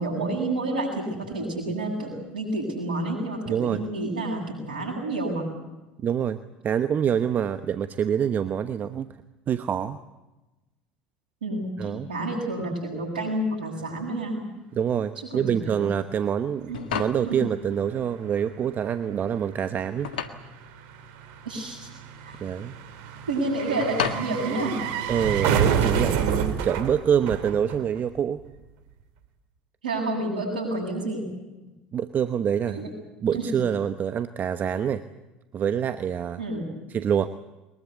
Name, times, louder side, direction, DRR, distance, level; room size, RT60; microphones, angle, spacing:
voice 1, 0.0-5.5 11.4-14.4 15.3-15.7 16.7-16.8 17.2-17.4 21.4-21.9 22.2-22.4 23.3-24.8 29.8-31.3 32.7-32.9 33.3-33.5 36.4-36.7, right 2 dB, 80° right, -5 dB, 7.7 m, -29 dB
voice 2, 3.5-3.8 6.0-6.4 6.6-9.2 9.5-10.0 11.8-12.1 14.7-20.2 22.4-22.7 25.1-28.4 31.9-32.8 33.2-35.0 35.5-36.4 36.9-37.3, right 8 dB, 40° right, 11 dB, 1.1 m, -26 dB
sound 1, 16.5-25.5, left 8 dB, 75° left, 1.7 m, -36 dB
sound 2, 17.5-17.6 17.8-28.2 28.5-28.6, right 7 dB, 65° right, 2.5 m, -29 dB
22.5 x 21.0 x 8.3 m, 1.1 s
hypercardioid pair, 70°, 5 cm